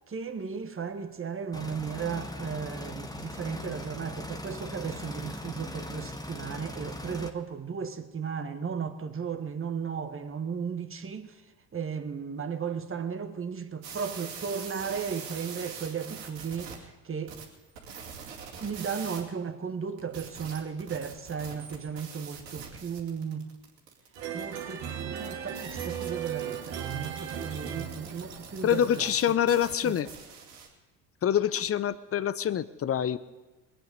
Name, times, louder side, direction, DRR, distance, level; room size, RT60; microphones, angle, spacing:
voice 1, 0.1-11.4 11.7-17.4 18.6-23.5 24.3-29.1 29.8-30.0, right 6 dB, 25° right, 1.4 m, -35 dB
sound 1, 1.5-7.3, left 1 dB, 10° left, 1.4 m, -40 dB
sound 2, 13.8-16.8 17.3-19.2 20.0-30.7, right 6 dB, 80° right, 2.5 m, -44 dB
sound 3, 24.1-28.8, right 8 dB, 65° right, 2.3 m, -36 dB
voice 2, 28.6-30.1 31.2-33.2, left 9 dB, 30° left, 0.7 m, -26 dB
22.0 x 9.0 x 5.3 m
hypercardioid pair, 60°, 49 cm